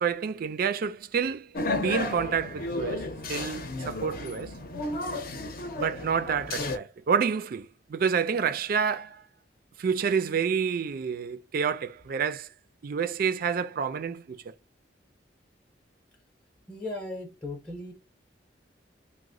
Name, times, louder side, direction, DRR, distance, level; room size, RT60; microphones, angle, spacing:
voice 1, 0.0-3.0 3.3-4.5 5.8-9.2 9.8-12.5 12.8-14.4, right 6 dB, 50° right, 0.3 m, -28 dB
sound 1, 1.5-6.8, left 2 dB, 55° left, 0.6 m, -33 dB
voice 2, 16.7-17.9, left 2 dB, 5° left, 0.7 m, -37 dB
2.9 x 2.1 x 3.7 m
head